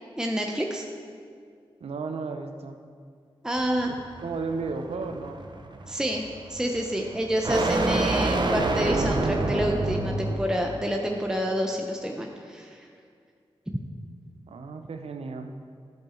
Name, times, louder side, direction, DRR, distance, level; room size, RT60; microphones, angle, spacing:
voice 1, 0.2-0.8 3.4-3.9 5.9-12.9, equal, 5° right, 1 dB, 0.8 m, -28 dB
voice 2, 1.8-2.8 3.9-5.4 14.5-15.6, right 4 dB, 90° right, 6 dB, 0.7 m, -34 dB
sound 1, 3.6-10.6, right 2 dB, 50° right, 0.9 m, -28 dB
10.5 x 7.2 x 4.4 m, 2.2 s
cardioid pair, 60°, 10 cm